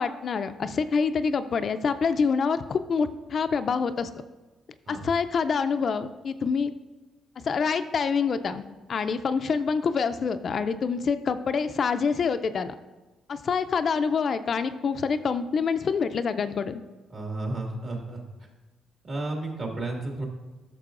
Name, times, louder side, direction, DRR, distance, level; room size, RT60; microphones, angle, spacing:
voice 1, 0.0-4.1 4.9-6.7 7.4-8.6 8.9-12.7 13.3-16.8, left 5 dB, 50° left, 10 dB, 0.4 m, -26 dB
voice 2, 17.1-18.2 19.0-20.2, right 2 dB, 50° right, 1 dB, 1.9 m, -32 dB
11.5 x 6.6 x 2.5 m, 1.2 s
cardioid pair, 90°, 0 cm